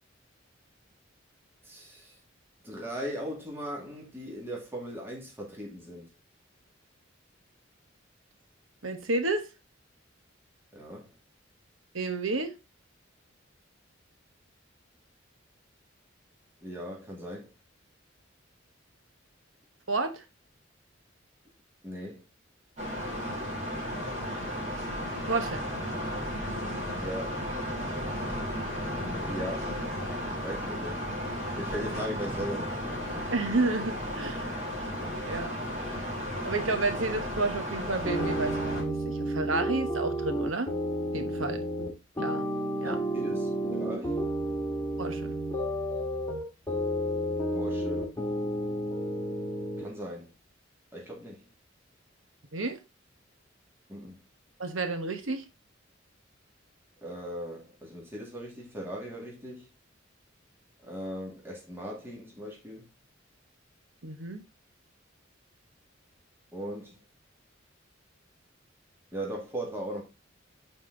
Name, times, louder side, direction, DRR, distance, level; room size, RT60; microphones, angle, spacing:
voice 1, 1.6-2.2 2.6-6.1 10.7-11.1 16.6-17.5 21.8-22.2 27.0-27.5 29.3-29.7 30.4-31.0 31.5-33.3 42.8-44.3 47.5-48.2 49.8-50.3 50.9-51.4 53.9-54.2 57.0-59.7 60.8-62.9 66.5-67.0 69.1-70.0, equal, 10° right, 2.1 m, -38 dB
voice 2, 8.8-9.5 11.9-12.5 19.9-20.2 25.3-25.6 33.3-34.5 35.3-35.6 36.4-40.7 41.1-41.6 42.2-42.4 42.8-43.0 45.0-45.4 52.5-52.8 54.6-55.4 64.0-64.4, right 3 dB, 90° right, 1.2 m, -31 dB
sound 1, 22.8-38.8, equal, 40° right, 2.6 m, -34 dB
sound 2, 38.0-49.9, right 1 dB, 15° left, 1.7 m, -31 dB
8.7 x 4.3 x 3.8 m
head